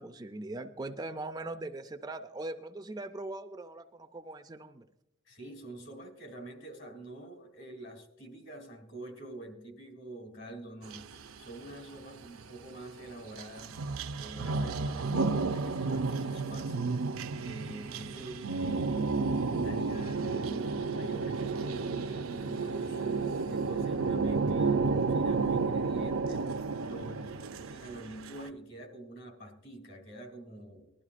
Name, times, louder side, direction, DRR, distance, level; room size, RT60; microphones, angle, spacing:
voice 1, 0.0-4.8, right 2 dB, 20° right, 8 dB, 0.4 m, -40 dB
voice 2, 5.3-16.8 17.4-30.9, right 2 dB, 60° left, 3 dB, 2.7 m, -46 dB
sound 1, 10.9-12.5 13.1-28.5, right 4 dB, 90° right, 0.6 m, -32 dB
20.0 x 12.5 x 2.5 m, 0.90 s
head